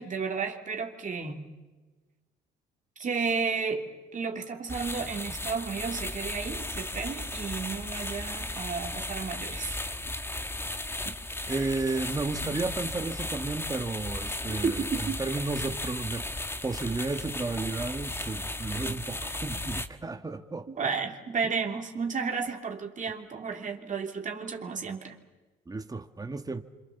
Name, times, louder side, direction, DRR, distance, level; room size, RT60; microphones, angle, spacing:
voice 1, 0.0-1.4 3.0-9.8 11.0-11.1 11.4-11.7 14.5-15.2 20.7-25.1, right 5 dB, 40° right, 3.0 m, -32 dB
sound 1, 4.7-19.9, left 1 dB, 10° left, 1.6 m, -35 dB
voice 2, 11.5-16.2 16.6-20.7 25.7-26.6, right 3 dB, 20° right, 1.8 m, -33 dB
26.5 x 25.5 x 7.2 m
supercardioid pair, 80°, 20 cm